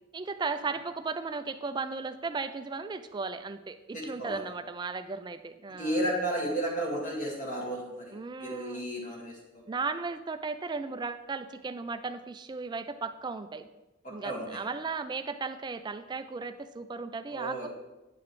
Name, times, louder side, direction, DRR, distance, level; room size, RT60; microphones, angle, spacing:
voice 1, 0.1-6.0 8.1-8.8 9.7-13.7 14.1-17.7, right 4 dB, 20° right, 9 dB, 0.3 m, -36 dB
voice 2, 3.9-4.4 5.8-9.7 14.0-14.6 17.3-17.7, right 1 dB, 40° left, -2 dB, 1.8 m, -33 dB
8.4 x 5.9 x 3.1 m, 1.0 s
head